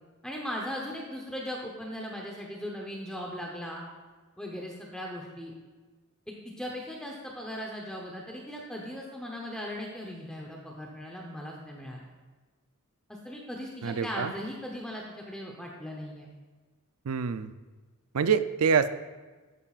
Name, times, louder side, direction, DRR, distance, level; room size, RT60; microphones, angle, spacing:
voice 1, 0.2-3.8 4.4-5.5 6.3-12.1 13.1-16.3, equal, 5° left, -1 dB, 0.9 m, -38 dB
voice 2, 13.8-14.3 17.0-17.5 18.1-18.9, right 6 dB, 75° right, 12 dB, 0.5 m, -26 dB
13.0 x 9.9 x 2.5 m, 1.3 s
head